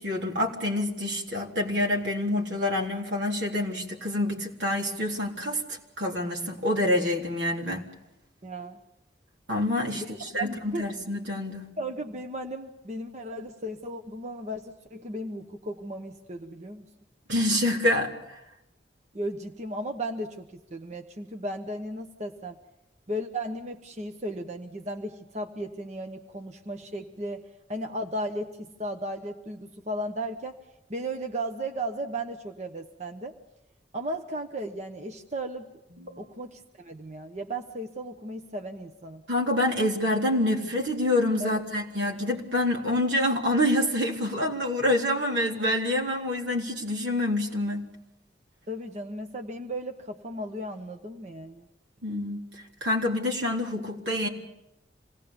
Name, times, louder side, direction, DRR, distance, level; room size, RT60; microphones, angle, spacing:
voice 1, 0.0-7.8 9.5-11.7 17.3-18.4 36.0-36.1 39.3-47.9 52.0-52.5 52.8-54.3, left 1 dB, 85° right, 0 dB, 3.7 m, -27 dB
voice 2, 8.4-8.8 9.9-10.1 10.4-10.9 11.8-16.9 19.1-22.6 23.1-30.6 30.9-33.3 33.9-35.7 36.2-39.2 41.4-41.6 48.7-51.7, right 1 dB, 40° right, 5 dB, 1.1 m, -35 dB
27.0 x 18.5 x 7.1 m, 0.90 s
head